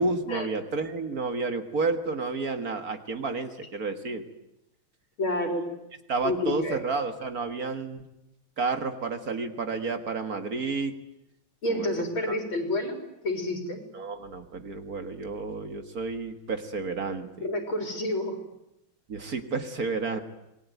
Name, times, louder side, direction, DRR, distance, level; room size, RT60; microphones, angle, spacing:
voice 1, 0.0-4.2 6.1-8.1 8.6-10.9 11.7-11.9 12.3-12.4 13.9-17.5 19.1-20.2, right 3 dB, 50° right, 7 dB, 2.0 m, -31 dB
voice 2, 5.2-5.7 6.2-6.8 11.6-13.0 13.2-13.8 17.4-18.4, left 1 dB, 85° left, 4 dB, 4.8 m, -29 dB
27.0 x 21.0 x 9.3 m, 0.88 s
omnidirectional pair, 2.2 m